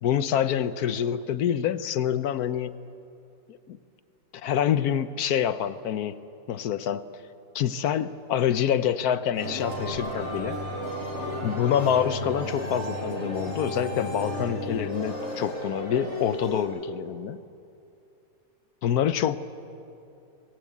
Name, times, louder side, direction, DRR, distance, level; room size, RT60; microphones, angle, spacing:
voice 1, 0.0-2.7 3.5-3.8 4.3-6.2 6.5-7.1 7.5-10.6 11.4-17.4 18.8-19.4, left 9 dB, 65° left, 13 dB, 1.2 m, -26 dB
sound 1, 9.3-16.6, equal, 40° left, 5.8 m, -33 dB
23.0 x 20.5 x 8.5 m, 2.6 s
omnidirectional pair, 1.9 m